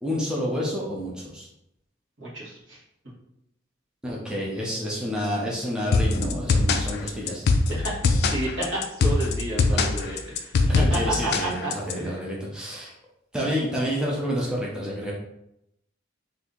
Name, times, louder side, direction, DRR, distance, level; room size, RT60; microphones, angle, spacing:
voice 1, 0.0-1.5 4.0-7.4 9.7-9.8 10.7-12.9 13.3-15.1, equal, 5° right, -5 dB, 0.5 m, -29 dB
voice 2, 2.2-2.8 7.7-12.3, right 1 dB, 65° right, -5 dB, 1.2 m, -31 dB
sound 1, 5.9-11.9, left 3 dB, 55° left, 0.3 m, -22 dB
2.7 x 2.5 x 3.7 m, 0.81 s
head